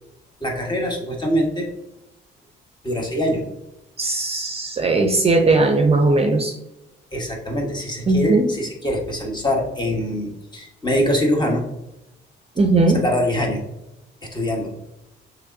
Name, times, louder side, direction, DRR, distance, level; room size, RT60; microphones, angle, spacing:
voice 1, 0.4-1.7 2.8-3.4 7.1-11.6 12.9-13.6 14.2-14.7, equal, 20° left, 0 dB, 1.2 m, -23 dB
voice 2, 4.0-6.6 8.1-8.5 12.6-13.0, right 2 dB, 30° right, 4 dB, 0.5 m, -18 dB
6.2 x 3.0 x 2.5 m, 0.91 s
cardioid pair, 90°, 20 cm